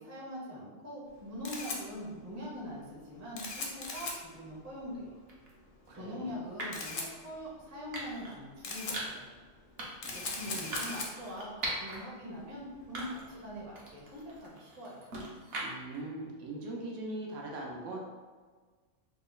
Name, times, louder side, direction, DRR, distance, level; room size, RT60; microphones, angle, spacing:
voice 1, 0.0-5.2 5.9-9.3 10.1-15.1, equal, 20° right, -5 dB, 0.5 m, -43 dB
Camera, 1.1-14.4, left 3 dB, 55° left, 0.6 m, -43 dB
sound 1, 5.3-5.5 6.6-6.9 7.9-8.4 8.9-9.3 9.8-10.1 10.7-12.0 12.4-12.5 12.9-13.4 13.8-16.0, right 1 dB, 55° right, 0.9 m, -40 dB
voice 2, 5.9-6.4 10.0-10.6 15.6-18.0, right 2 dB, 75° right, -2 dB, 1.0 m, -41 dB
3.1 x 2.1 x 3.8 m, 1.4 s
omnidirectional pair, 1.3 m